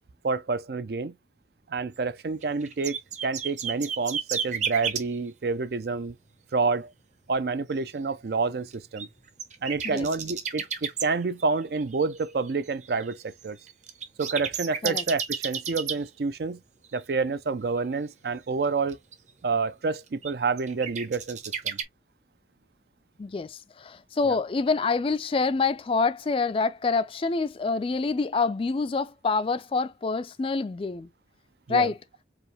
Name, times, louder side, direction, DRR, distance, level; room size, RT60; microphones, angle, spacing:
voice 1, 0.2-1.1 1.7-3.0 3.2-6.2 6.5-6.9 7.3-9.1 9.6-13.6 14.2-16.6 16.9-19.0 19.4-21.8 24.2-24.4 31.7-31.9, right 4 dB, 55° right, 0.4 m, -28 dB
sound 1, 2.2-5.0 8.7-11.0 11.4-16.0 16.8-17.0 18.6-19.1 20.2-21.8, right 7 dB, 40° right, 0.9 m, -32 dB
voice 2, 23.2-31.1 31.7-32.0, left 4 dB, 30° left, 0.3 m, -26 dB
4.9 x 2.5 x 3.3 m
head